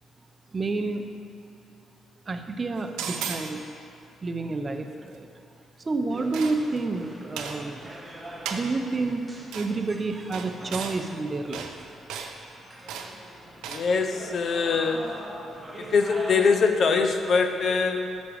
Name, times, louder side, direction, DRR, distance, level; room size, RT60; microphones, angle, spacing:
voice 1, 0.5-1.0 2.3-3.6 4.2-5.3 5.9-7.9 8.5-9.2 9.5-11.7, right 3 dB, 30° right, 6 dB, 0.5 m, -29 dB
sound 1, 3.0-3.5 6.3-6.8 7.4-7.6 8.5-8.7 9.5-9.7 10.3-11.0 11.5-11.7 12.1-12.3 12.9-13.1 13.6-13.9, right 7 dB, 90° right, 0.5 m, -34 dB
sound 2, 6.1-16.6, right 1 dB, 10° right, 0.9 m, -43 dB
voice 2, 13.6-15.2 15.8-18.2, left 5 dB, 55° left, 6 dB, 0.6 m, -23 dB
5.7 x 5.2 x 6.3 m, 2.7 s
cardioid pair, 90°, 0 cm